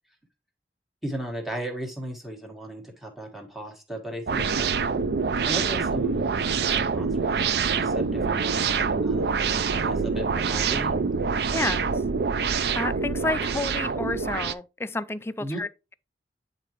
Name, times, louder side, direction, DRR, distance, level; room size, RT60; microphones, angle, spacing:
voice 1, 1.0-5.1 5.4-7.3 7.7-11.0 15.4-15.6, right 1 dB, ahead, 1.4 m, -36 dB
sound 1, 4.3-14.5, right 5 dB, 65° right, 0.4 m, -25 dB
voice 2, 11.5-11.9 12.7-15.7, left 2 dB, 15° left, 0.3 m, -30 dB
9.4 x 3.9 x 3.0 m
head